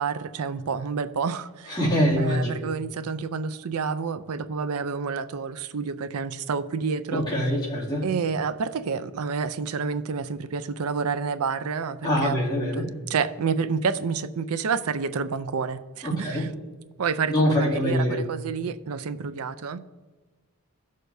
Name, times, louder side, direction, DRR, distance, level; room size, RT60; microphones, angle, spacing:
voice 1, 0.0-1.8 2.2-7.3 8.0-16.5 17.0-19.8, right 5 dB, 75° right, 13 dB, 0.5 m, -29 dB
voice 2, 1.7-2.6 7.1-8.0 12.0-12.9 16.0-16.5 17.3-18.2, equal, 20° left, -7 dB, 2.5 m, -24 dB
17.0 x 6.5 x 2.7 m, 1.3 s
head